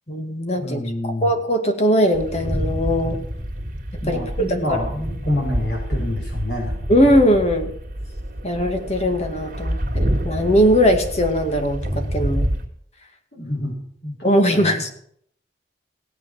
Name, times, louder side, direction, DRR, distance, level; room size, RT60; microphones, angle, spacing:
voice 1, 0.1-3.2 4.1-4.2 4.7-4.8 6.9-7.7 8.4-12.5 14.2-14.9, equal, 40° left, 5 dB, 2.1 m, -20 dB
voice 2, 0.6-1.3 4.0-6.7 13.3-13.7 14.0-14.2 14.5-14.9, left 1 dB, 70° left, 0 dB, 5.4 m, -27 dB
sound 1, 2.1-12.7, equal, 50° right, 2.7 m, -27 dB
17.5 x 8.3 x 7.2 m, 0.65 s
head